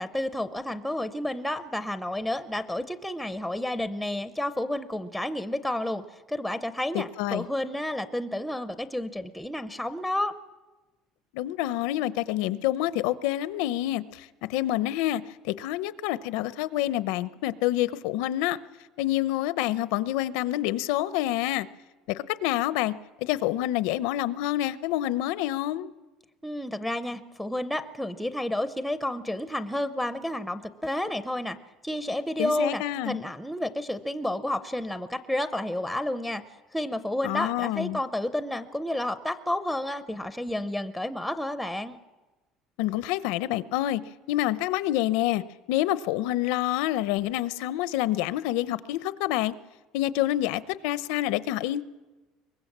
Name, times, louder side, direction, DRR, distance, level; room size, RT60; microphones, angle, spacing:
voice 1, 0.0-10.3 26.4-31.6 31.8-36.4 36.7-42.0, left 1 dB, ahead, 11 dB, 0.6 m, -31 dB
voice 2, 6.9-7.5 11.3-18.6 19.0-21.7 22.1-25.9 32.4-33.2 37.2-38.0 42.8-44.0 44.3-49.5 49.9-51.8, left 14 dB, 80° left, 16 dB, 0.8 m, -27 dB
23.5 x 20.5 x 7.4 m, 1.2 s
cardioid pair, 165°, 0 cm